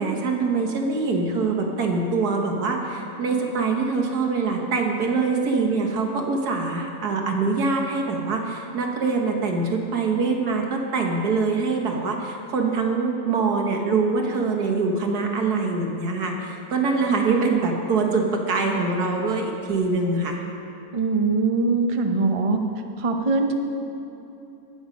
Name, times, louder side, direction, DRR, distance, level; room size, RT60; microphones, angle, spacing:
voice 1, 0.0-20.4, right 4 dB, 80° right, 2 dB, 1.9 m, -24 dB
voice 2, 20.9-22.6 23.0-23.5, right 3 dB, 35° right, 4 dB, 0.6 m, -22 dB
19.5 x 7.2 x 5.2 m, 2.9 s
omnidirectional pair, 1.6 m